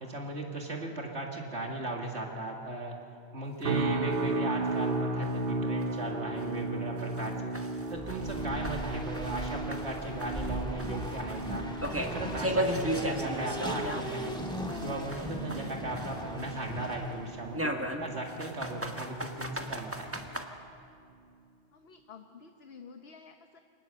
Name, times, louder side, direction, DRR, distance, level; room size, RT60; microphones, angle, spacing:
voice 1, 0.0-3.0 3.3-7.5 7.9-11.6 11.9-14.4 14.8-17.7 18.0-20.1, right 1 dB, 70° right, 1 dB, 2.5 m, -37 dB
sound 1, 3.6-3.7 4.1-4.2 4.7-4.8 5.2-5.3 5.8-5.9 6.4-6.5 7.0-9.5 9.7-14.4 14.7-16.7 17.5-20.4, right 1 dB, 10° right, 1.2 m, -36 dB
sound 2, 3.6-18.9 19.2-19.6 20.1-20.3, right 3 dB, 55° right, 1.0 m, -36 dB
Race car auto racing, 7.9-17.5, equal, 5° left, 2.2 m, -39 dB
voice 2, 21.7-23.6, left 6 dB, 60° left, 5 dB, 1.2 m, -51 dB
24.0 x 19.0 x 6.8 m, 2.5 s
omnidirectional pair, 1.2 m